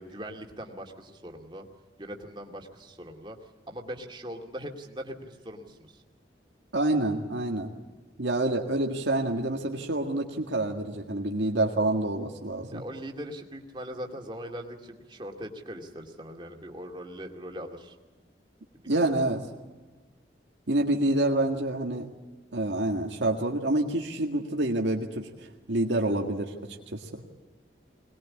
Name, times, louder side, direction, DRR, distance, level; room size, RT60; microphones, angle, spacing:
voice 1, 0.0-1.7 2.0-6.0 12.7-18.0 18.8-19.2, equal, 25° right, 2 dB, 2.3 m, -41 dB
voice 2, 6.7-7.7 8.2-12.8 18.9-19.4 20.7-22.1 22.5-25.3 25.7-26.5 26.9-27.2, right 1 dB, 85° right, 1 dB, 1.9 m, -27 dB
22.5 x 20.5 x 8.6 m, 1.3 s
head